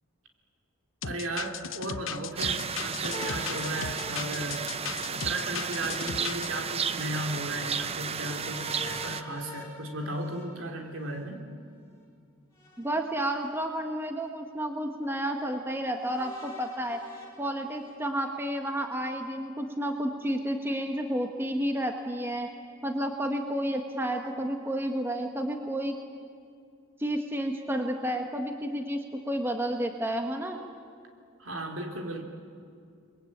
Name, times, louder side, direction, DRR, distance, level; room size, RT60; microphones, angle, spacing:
sound 1, 1.0-6.5, left 7 dB, 65° left, 0.8 m, -37 dB
voice 1, 1.0-4.6 5.1-11.4 31.4-32.2, right 1 dB, 70° right, 3 dB, 3.3 m, -35 dB
sound 2, 2.4-9.2, right 6 dB, 30° right, 0.7 m, -33 dB
sound 3, 3.1-5.8 8.2-11.2 12.5-13.5 14.2-14.3 16.0-18.0, left 1 dB, 15° left, 5.8 m, -46 dB
voice 2, 12.8-17.0 17.4-22.5 22.8-26.0 27.0-30.6, right 1 dB, 10° right, 4 dB, 1.3 m, -31 dB
29.5 x 22.0 x 8.7 m, 2.3 s
head